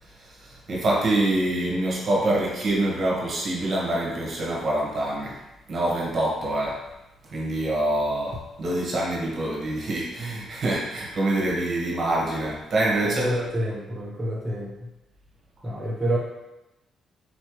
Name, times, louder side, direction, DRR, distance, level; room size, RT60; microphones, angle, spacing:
voice 1, 0.0-5.4 5.7-6.9 7.2-13.3, right 1 dB, 50° right, -3 dB, 1.4 m, -25 dB
voice 2, 13.0-14.9 15.6-16.2, equal, 20° right, -6 dB, 0.9 m, -28 dB
4.2 x 3.2 x 3.1 m, 0.96 s
cardioid pair, 90°, 0 cm